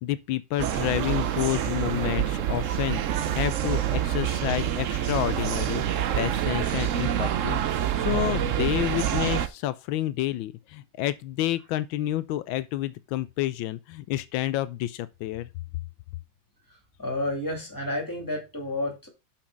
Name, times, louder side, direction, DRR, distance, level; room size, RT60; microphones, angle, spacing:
voice 1, 0.0-15.5, left 14 dB, 85° left, 1.4 m, -29 dB
sound 1, 0.6-9.5, right 10 dB, 65° right, 0.8 m, -27 dB
sound 2, 0.7-6.2, right 9 dB, 35° right, 1.3 m, -43 dB
voice 2, 17.0-19.1, left 1 dB, 10° left, 3.1 m, -30 dB
6.0 x 6.0 x 5.1 m
omnidirectional pair, 2.1 m